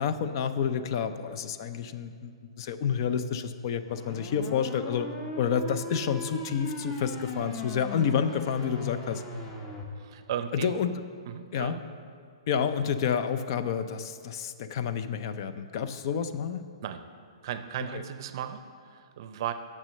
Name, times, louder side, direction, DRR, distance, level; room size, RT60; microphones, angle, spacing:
voice 1, 0.0-5.1 5.4-9.2 10.5-11.0 11.5-11.8 12.5-16.7 17.9-18.0, left 7 dB, 45° left, 11 dB, 0.5 m, -29 dB
sound 1, 3.9-9.8, left 1 dB, 15° left, 0.9 m, -38 dB
voice 2, 10.0-10.8 11.3-11.8 16.8-17.0 17.4-19.5, right 9 dB, 50° right, 10 dB, 0.5 m, -36 dB
6.6 x 6.1 x 7.5 m, 2.2 s
hypercardioid pair, 145°, 3 cm